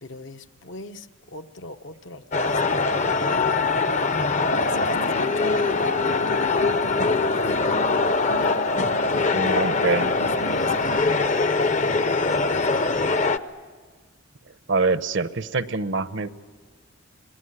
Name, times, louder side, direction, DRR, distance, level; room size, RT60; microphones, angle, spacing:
voice 1, 0.0-3.5 4.6-5.7 6.3-7.7 8.2-8.9 9.5-10.0 10.5-13.2, left 2 dB, 65° left, 8 dB, 0.9 m, -39 dB
sound 1, 2.3-13.4, left 3 dB, 35° left, 0.7 m, -22 dB
voice 2, 9.3-10.1 14.7-16.3, right 3 dB, 60° right, 13 dB, 0.8 m, -24 dB
26.5 x 20.0 x 10.0 m, 1.5 s
head